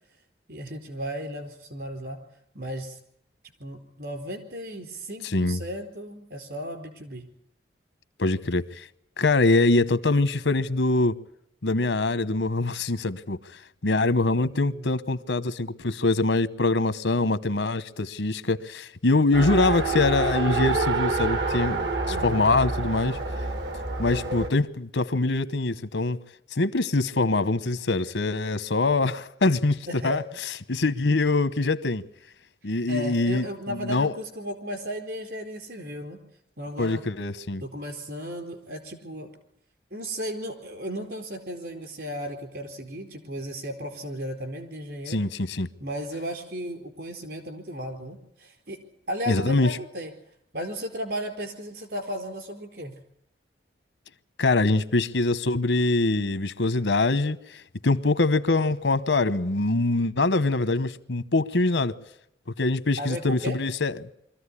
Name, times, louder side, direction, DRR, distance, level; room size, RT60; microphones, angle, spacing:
voice 1, 0.5-2.2 2.5-3.0 3.6-7.3 14.5-14.9 22.0-22.5 29.9-30.2 32.9-36.2 36.6-37.0 37.6-39.3 39.9-45.2 45.8-48.8 49.1-50.1 50.5-52.9 63.0-63.6, equal, 65° right, 4.2 m, -35 dB
voice 2, 5.2-5.6 8.2-8.9 9.2-11.1 11.6-13.4 13.8-23.2 24.0-26.2 26.5-30.2 30.7-32.0 32.6-34.1 36.8-37.6 45.1-45.7 49.3-49.8 54.4-57.4 57.8-61.9 62.6-64.1, left 2 dB, 90° left, 1.0 m, -24 dB
Race car auto racing, 19.3-24.5, right 3 dB, 80° right, 1.9 m, -27 dB
23.5 x 14.5 x 9.9 m
head